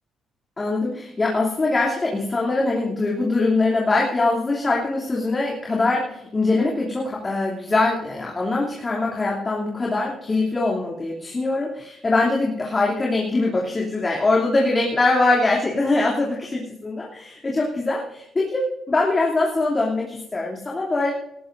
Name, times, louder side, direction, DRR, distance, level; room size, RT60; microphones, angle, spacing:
voice 1, 0.6-21.1, left 2 dB, 30° left, -4 dB, 2.9 m, -22 dB
19.0 x 14.0 x 2.6 m, 0.80 s
cardioid pair, 90°, 0 cm